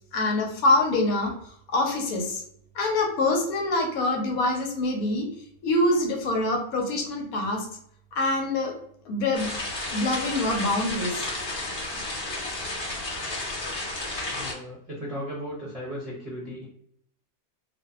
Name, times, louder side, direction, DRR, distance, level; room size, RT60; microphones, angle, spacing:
voice 1, 0.1-1.3 1.7-2.4 2.7-5.3 5.6-7.7 8.1-8.7 9.1-9.5 9.9-11.3, left 2 dB, 75° left, 1 dB, 1.1 m, -25 dB
sound 1, 9.3-14.5, left 2 dB, 45° left, 1.0 m, -32 dB
voice 2, 14.3-16.7, equal, 35° right, -7 dB, 0.6 m, -36 dB
2.6 x 2.4 x 2.3 m, 0.67 s
omnidirectional pair, 1.5 m